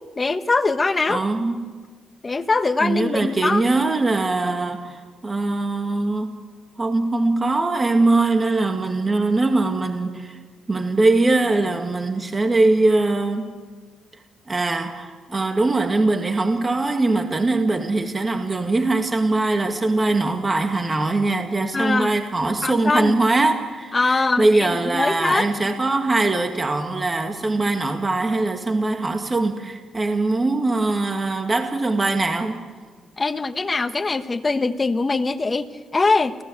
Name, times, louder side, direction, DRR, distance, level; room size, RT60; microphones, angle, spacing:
voice 1, 0.2-1.2 2.2-3.6 21.7-22.1 22.6-23.1 23.9-25.5 33.2-36.4, left 3 dB, 25° left, 10 dB, 1.3 m, -22 dB
voice 2, 1.1-1.8 2.8-6.3 6.8-10.4 10.7-13.5 14.5-32.6, right 2 dB, 25° right, 5 dB, 2.0 m, -21 dB
30.0 x 16.5 x 8.1 m, 1.5 s
cardioid pair, 90°, 0 cm